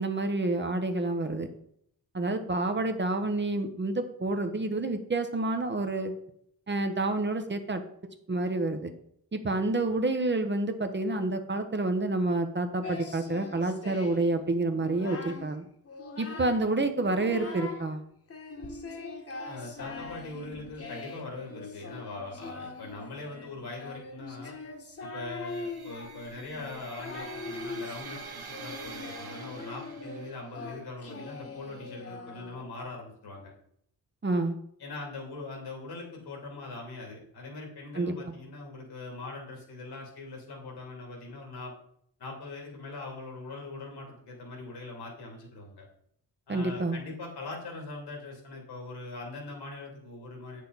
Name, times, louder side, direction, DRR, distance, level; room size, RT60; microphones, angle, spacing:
voice 1, 0.0-1.5 2.1-6.1 6.7-7.8 8.3-8.9 9.3-15.7 16.2-18.0 34.2-34.6 37.9-38.3 46.5-47.0, right 2 dB, 30° right, 7 dB, 0.9 m, -28 dB
Singing, 12.8-14.3 14.7-15.5 15.8-16.7 17.0-17.9 18.3-32.8, left 3 dB, 35° left, 1.4 m, -42 dB
voice 2, 19.4-24.6 25.0-33.5 34.8-41.7 42.2-45.9 46.5-50.6, left 3 dB, 85° left, 0 dB, 2.9 m, -41 dB
sound 1, 25.5-30.5, right 5 dB, 70° right, 1.4 m, -46 dB
8.4 x 6.5 x 4.0 m, 0.70 s
cardioid pair, 95°, 38 cm